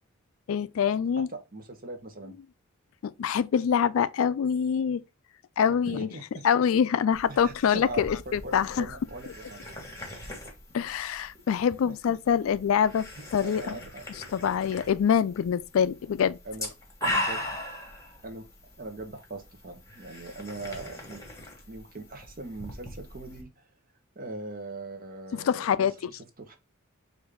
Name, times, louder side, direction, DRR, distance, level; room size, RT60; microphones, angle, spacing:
voice 1, 0.5-1.3 3.0-5.0 5.6-6.1 6.4-8.9 10.7-13.1 13.3-13.7 14.3-16.4 25.3-25.9, left 7 dB, 70° left, 0.3 m, -25 dB
voice 2, 1.3-2.4 5.9-6.5 7.3-9.8 11.8-11.9 13.2-14.0 16.4-16.7 17.0-17.5 18.2-18.5 18.8-21.2 21.7-23.7 24.1-26.6, right 2 dB, 40° right, 1.0 m, -41 dB
sound 1, 7.1-23.4, left 1 dB, 15° left, 1.4 m, -39 dB
5.1 x 2.6 x 3.5 m
head